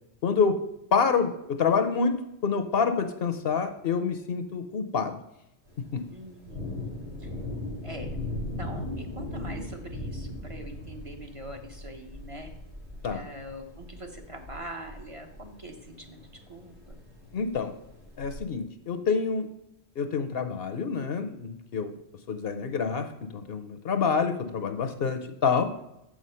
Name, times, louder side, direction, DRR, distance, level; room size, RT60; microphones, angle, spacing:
voice 1, 0.2-0.6 0.9-5.2 5.9-6.0 13.0-13.2 17.3-17.7 18.2-19.5 20.0-21.9 22.3-25.7, left 5 dB, 60° left, 7 dB, 0.9 m, -27 dB
Thunder, 5.7-18.4, left 1 dB, 80° right, 2.9 m, -39 dB
voice 2, 6.1-7.3 7.8-8.2 8.6-12.5 13.1-16.2 16.5-17.0, right 1 dB, 30° right, 3 dB, 0.9 m, -43 dB
6.9 x 6.2 x 5.5 m, 0.85 s
omnidirectional pair, 1.2 m